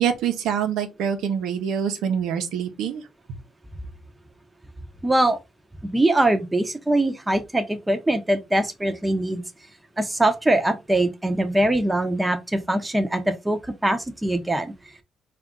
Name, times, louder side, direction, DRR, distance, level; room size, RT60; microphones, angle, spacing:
voice 1, 0.0-3.0, right 8 dB, 90° right, 0.8 m, -25 dB
voice 2, 5.0-5.4 5.9-9.4 10.0-14.7, right 1 dB, 10° right, 0.7 m, -22 dB
4.3 x 2.5 x 3.7 m
cardioid pair, 90°, 0 cm